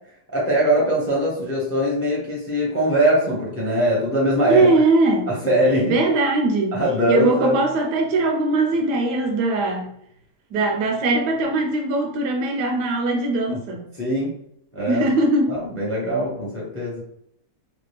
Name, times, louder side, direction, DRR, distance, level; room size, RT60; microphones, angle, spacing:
voice 1, 0.3-4.7 5.3-6.0 6.7-7.6 13.5-13.6 14.0-14.3 14.7-15.0 15.5-17.0, equal, 15° left, -4 dB, 0.6 m, -21 dB
voice 2, 4.5-5.3 5.9-6.8 7.1-9.9 10.5-13.8 14.9-15.6, right 2 dB, 80° right, 2 dB, 1.3 m, -20 dB
3.2 x 2.3 x 3.2 m, 0.72 s
omnidirectional pair, 1.7 m